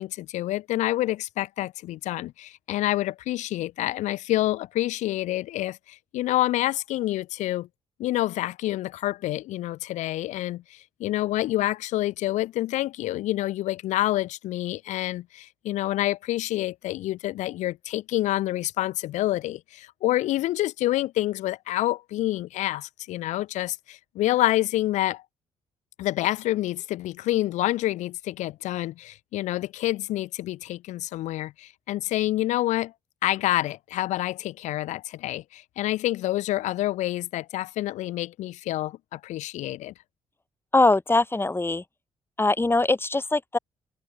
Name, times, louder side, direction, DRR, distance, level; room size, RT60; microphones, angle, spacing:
voice 1, 0.0-7.7 8.0-25.2 26.0-32.9 33.2-39.9, left 15 dB, 80° left, 0.8 m, -27 dB
voice 2, 40.7-41.8 42.4-43.6, left 2 dB, 20° left, 4.6 m, -22 dB
supercardioid pair, 75°, 12 cm